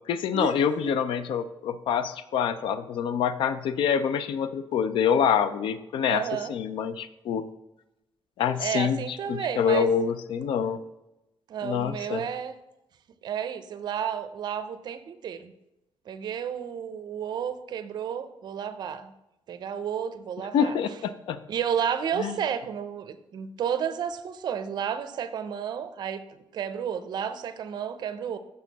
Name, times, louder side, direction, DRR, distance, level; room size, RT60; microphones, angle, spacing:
voice 1, 0.1-7.4 8.4-10.8 11.6-12.2 20.5-21.4 22.2-22.4, left 7 dB, 75° left, 13 dB, 0.4 m, -26 dB
voice 2, 6.1-6.5 8.6-9.9 11.5-12.5 13.2-15.5 16.1-19.1 19.5-20.8 21.5-26.2 26.5-28.4, right 8 dB, 55° right, 11 dB, 0.5 m, -31 dB
6.4 x 6.4 x 4.0 m, 0.91 s
wide cardioid pair, 175°, 9 cm